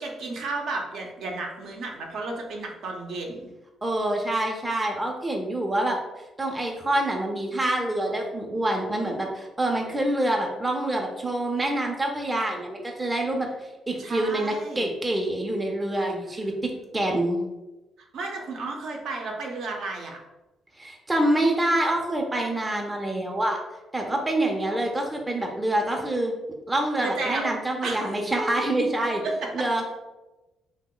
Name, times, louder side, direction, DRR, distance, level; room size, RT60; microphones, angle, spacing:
voice 1, 0.0-3.5 14.0-14.8 18.1-20.2 27.0-27.5 27.8-28.2 29.2-29.6, right 3 dB, 75° right, 1 dB, 0.6 m, -32 dB
voice 2, 3.8-6.0 6.4-13.5 13.9-16.5 16.9-17.4 20.8-23.6 23.9-26.3 26.7-29.2 29.5-30.0, right 1 dB, 20° right, 1 dB, 0.4 m, -26 dB
2.9 x 2.0 x 3.7 m, 1.0 s
cardioid pair, 90°, 0 cm